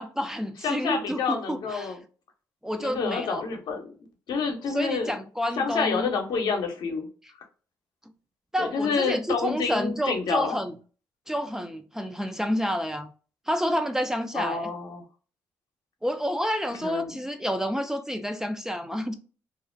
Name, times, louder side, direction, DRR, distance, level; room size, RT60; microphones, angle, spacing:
voice 1, 0.0-1.9 2.6-3.4 4.7-6.1 8.5-10.8 11.3-13.1 13.5-14.7 16.0-19.1, equal, 5° right, 0.3 m, -29 dB
voice 2, 0.6-2.0 2.8-3.9 4.3-5.2 5.6-7.1 8.6-10.5 14.3-15.0 16.8-17.1, left 5 dB, 70° left, 0.7 m, -28 dB
2.4 x 2.0 x 2.5 m
supercardioid pair, 65°, 8 cm